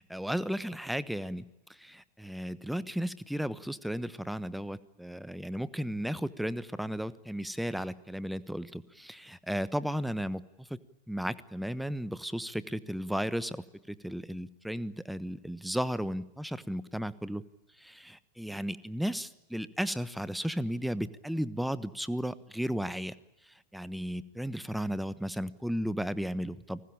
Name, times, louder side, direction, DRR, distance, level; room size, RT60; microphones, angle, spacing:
voice 1, 0.0-1.4 1.8-10.8 11.1-17.4 17.8-23.1 23.7-26.8, equal, ahead, 17 dB, 1.1 m, -34 dB
29.5 x 20.0 x 8.8 m, 0.93 s
figure-of-eight pair, 90°, 0 cm